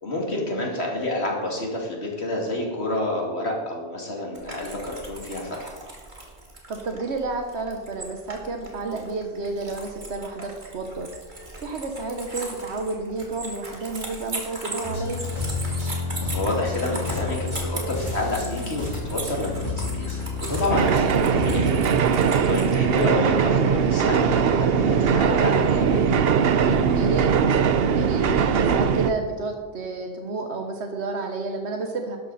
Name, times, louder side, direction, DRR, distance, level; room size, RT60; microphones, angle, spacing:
voice 1, 0.0-5.7 16.2-20.2 20.4-21.9 22.2-26.0 26.6-26.9, left 1 dB, 75° left, -1 dB, 2.9 m, -29 dB
sound 1, 4.3-23.1, right 2 dB, 45° right, 2.3 m, -38 dB
voice 2, 6.7-11.1 11.6-15.2 22.5-22.9 26.9-27.6 27.9-32.2, right 3 dB, 80° right, 4 dB, 1.4 m, -31 dB
sound 2, 14.8-21.5, left 3 dB, 25° left, 3.5 m, -30 dB
sound 3, 20.7-29.1, right 6 dB, 65° right, 0.9 m, -20 dB
12.5 x 11.5 x 4.2 m, 1.3 s
omnidirectional pair, 1.1 m